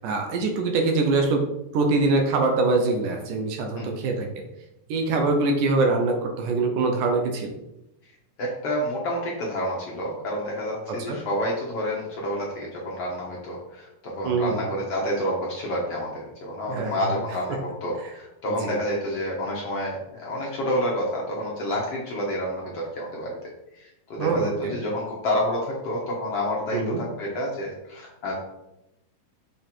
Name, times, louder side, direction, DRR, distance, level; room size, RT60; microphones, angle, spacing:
voice 1, 0.0-1.4 1.7-4.5 4.9-7.6 10.9-11.2 14.2-14.6 16.7-17.0 18.6-18.8 24.2-24.8 26.7-27.0, right 3 dB, 70° right, 3 dB, 2.3 m, -24 dB
voice 2, 8.4-23.4 23.7-28.4, equal, 55° left, -3 dB, 1.8 m, -29 dB
6.9 x 5.7 x 4.5 m, 0.89 s
omnidirectional pair, 4.1 m